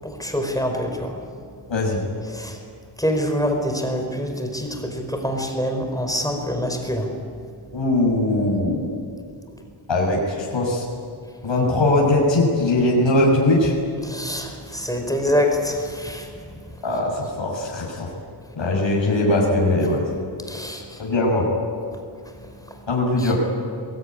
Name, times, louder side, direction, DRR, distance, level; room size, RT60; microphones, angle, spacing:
voice 1, 0.0-1.2 2.3-2.6 3.0-7.1 14.0-16.8 20.5-21.0 22.2-22.9 23.2-23.3, equal, 5° left, 4 dB, 4.4 m, -26 dB
voice 2, 1.7-2.0 7.7-8.9 9.9-10.9 11.4-13.7 16.8-18.1 18.6-20.1 21.0-21.5 22.9-23.4, left 2 dB, 65° left, -3 dB, 6.4 m, -20 dB
22.0 x 22.0 x 10.0 m, 2.3 s
wide cardioid pair, 80°, 48 cm